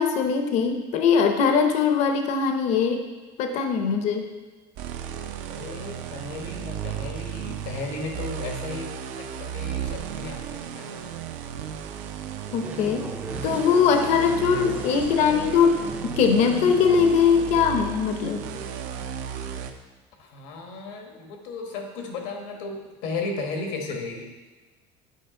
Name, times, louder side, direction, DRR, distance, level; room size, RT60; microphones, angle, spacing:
voice 1, 0.0-3.0 3.4-4.3 12.5-13.0 13.4-18.4, left 6 dB, 60° left, 5 dB, 0.7 m, -21 dB
sound 1, 4.8-19.7, right 8 dB, 75° right, 0.6 m, -35 dB
voice 2, 5.5-11.2 14.0-14.6 14.9-15.8 20.2-24.2, left 3 dB, 85° left, 2 dB, 1.3 m, -35 dB
sound 2, 12.6-17.8, right 2 dB, 10° right, 0.4 m, -39 dB
8.4 x 5.0 x 3.7 m, 1.3 s
cardioid pair, 145°, 13 cm